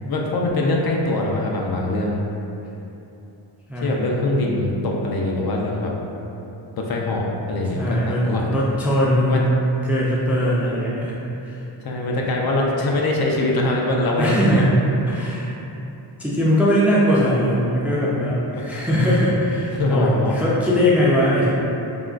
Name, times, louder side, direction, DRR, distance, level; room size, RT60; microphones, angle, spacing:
voice 1, 0.1-2.2 3.8-5.9 6.8-8.5 9.3-9.4 10.7-11.0 11.8-14.7 18.7-18.8 19.7-20.4, left 2 dB, 55° left, -2 dB, 0.5 m, -23 dB
voice 2, 3.7-4.1 7.7-9.4 9.8-11.2 11.4-11.6 14.2-14.8 15.1-15.5 16.2-21.5, equal, 5° right, -6 dB, 0.3 m, -20 dB
3.6 x 2.2 x 2.4 m, 2.9 s
cardioid pair, 80°, 45 cm